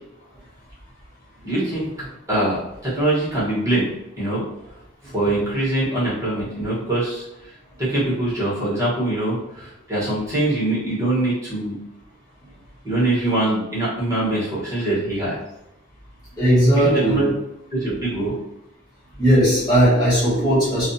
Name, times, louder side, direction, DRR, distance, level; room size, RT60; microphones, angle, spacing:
voice 1, 1.4-1.9 2.3-3.9 4.2-4.4 5.1-7.2 7.8-11.8 12.8-15.4 16.8-17.3 17.7-18.4, right 1 dB, 15° right, -9 dB, 1.1 m, -23 dB
voice 2, 16.4-17.2 19.2-20.9, right 1 dB, 20° left, -9 dB, 1.3 m, -17 dB
2.4 x 2.3 x 2.6 m, 0.88 s
head